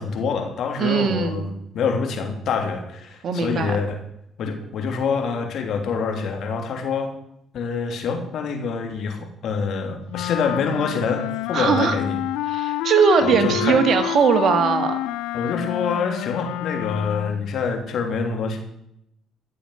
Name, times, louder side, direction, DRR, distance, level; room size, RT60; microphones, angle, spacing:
voice 1, 0.0-4.0 4.4-7.1 7.5-12.2 13.2-13.8 15.3-18.6, left 5 dB, 70° left, 4 dB, 3.1 m, -26 dB
voice 2, 0.8-1.5 3.2-3.8 11.5-12.0 12.5-15.0, right 6 dB, 60° right, 8 dB, 1.9 m, -20 dB
Wind instrument woodwind instrument, 10.1-17.5, left 15 dB, 85° left, 0.5 m, -28 dB
15.0 x 7.2 x 8.0 m, 0.78 s
supercardioid pair, 65°, 0 cm